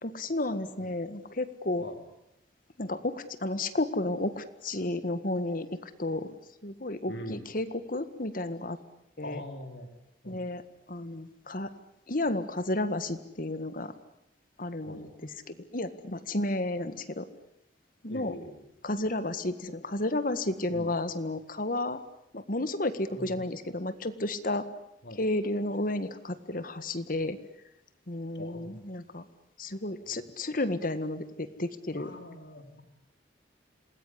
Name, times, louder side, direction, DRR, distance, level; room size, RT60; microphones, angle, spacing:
voice 1, 0.0-1.8 2.8-6.3 6.6-8.8 9.2-9.4 10.2-10.6 10.9-11.7 12.1-13.9 14.6-15.1 15.5-17.3 18.0-18.3 18.8-22.0 22.3-24.6 25.2-27.4 28.1-29.2 29.6-32.1, left 2 dB, 50° left, 12 dB, 1.7 m, -32 dB
voice 2, 7.1-7.5 9.2-9.9 10.2-10.5 14.8-15.1 18.1-18.7 20.7-21.0 23.1-23.4 25.0-25.2 28.3-28.9 30.0-30.3 31.9-32.8, left 1 dB, 70° left, 5 dB, 3.7 m, -43 dB
28.0 x 20.0 x 10.0 m, 0.81 s
head